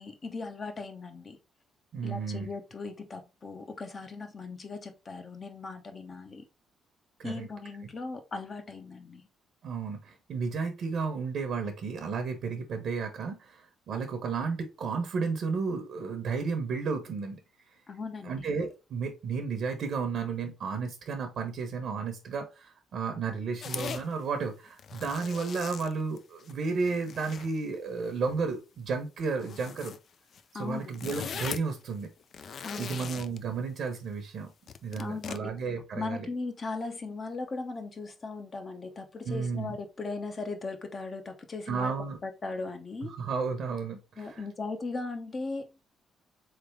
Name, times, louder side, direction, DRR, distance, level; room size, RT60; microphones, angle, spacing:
voice 1, 0.0-1.4 2.0-6.5 7.2-9.3 17.9-18.5 30.5-31.1 32.6-33.0 35.0-35.5 36.0-41.9 42.2-43.2 44.2-45.9, left 3 dB, 40° left, 0.8 m, -38 dB
voice 2, 1.9-2.5 7.2-7.5 9.6-17.4 18.2-29.9 30.5-32.1 32.4-34.5 34.8-36.3 39.2-39.8 41.7-42.2 43.0-44.4, right 5 dB, 65° right, 0.8 m, -33 dB
sound 1, 23.6-24.0 24.7-26.5 26.8-27.5 28.0-28.3 29.4-30.0 30.3-30.4 30.7-31.7 32.2-33.4 34.7-35.4, left 7 dB, 55° left, 0.4 m, -40 dB
3.7 x 3.4 x 3.3 m
cardioid pair, 90°, 0 cm